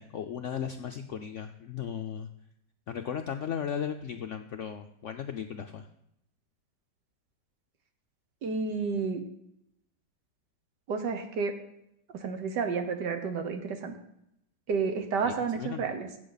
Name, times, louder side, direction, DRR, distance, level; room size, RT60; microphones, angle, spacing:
voice 1, 0.0-2.3 2.9-5.9 15.2-15.9, left 8 dB, 70° left, 6 dB, 0.7 m, -36 dB
voice 2, 8.4-9.2 10.9-11.6 12.1-14.0 14.7-16.1, right 5 dB, 75° right, 7 dB, 1.7 m, -31 dB
15.0 x 7.6 x 4.0 m, 0.79 s
omnidirectional pair, 1.9 m